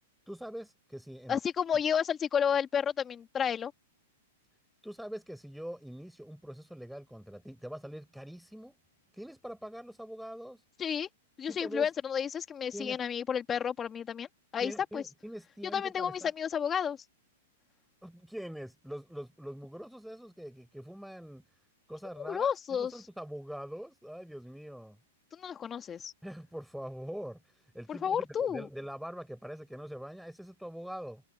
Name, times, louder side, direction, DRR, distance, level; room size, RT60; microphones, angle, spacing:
voice 1, 0.3-1.4 4.8-8.8 9.2-10.6 11.5-11.9 12.7-13.0 14.6-16.3 18.0-21.4 21.9-25.0 26.2-27.4 27.7-31.2, equal, ahead, 6.8 m, -43 dB
voice 2, 1.3-3.7 10.8-11.1 11.4-14.3 14.5-15.0 15.7-17.0 22.2-22.9 25.3-26.1 27.9-28.7, left 8 dB, 20° left, 2.3 m, -31 dB
hypercardioid pair, 115°, 0 cm